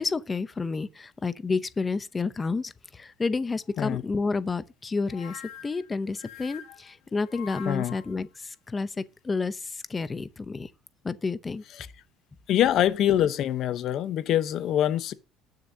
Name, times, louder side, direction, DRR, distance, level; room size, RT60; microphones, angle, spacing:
voice 1, 0.0-10.7 11.0-11.6, left 4 dB, 15° left, 0.6 m, -30 dB
sound 1, 5.1-8.2, left 8 dB, 75° left, 1.8 m, -45 dB
voice 2, 12.5-15.1, left 11 dB, 50° left, 0.8 m, -24 dB
19.5 x 6.5 x 2.7 m
cardioid pair, 155°, 0 cm